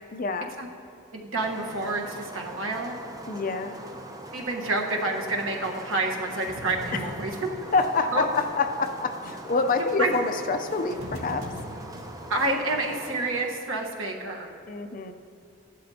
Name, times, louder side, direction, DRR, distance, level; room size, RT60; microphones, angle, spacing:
voice 1, 0.1-0.5 3.3-3.7 6.9-7.0 7.7-11.5 14.7-15.1, left 4 dB, 40° left, 7 dB, 0.5 m, -26 dB
voice 2, 1.1-3.0 4.3-7.3 8.1-8.2 10.0-10.1 12.3-14.5, right 2 dB, 65° right, 1 dB, 1.2 m, -28 dB
sound 1, 1.4-13.6, right 1 dB, 15° right, 0.6 m, -42 dB
sound 2, 6.5-10.3 10.6-12.5, equal, 85° right, 1.7 m, -41 dB
15.0 x 12.0 x 2.8 m, 2.5 s
head